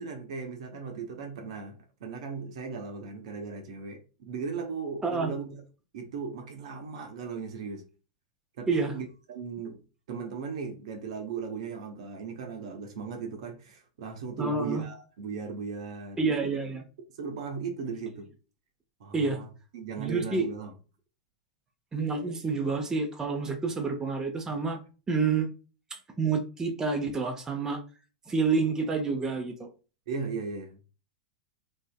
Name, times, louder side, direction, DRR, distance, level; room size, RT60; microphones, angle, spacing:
voice 1, 0.0-5.6 5.9-7.8 8.6-9.8 10.1-16.5 17.2-18.3 19.0-20.7 30.1-30.8, right 5 dB, 65° right, 0.7 m, -37 dB
voice 2, 5.0-5.4 8.7-8.9 14.4-14.8 16.2-16.8 19.1-19.4 20.0-20.4 21.9-24.8 25.1-25.5 25.9-27.8 28.3-29.7, right 4 dB, 15° right, 0.7 m, -28 dB
3.1 x 2.7 x 2.2 m
hypercardioid pair, 95°, 4 cm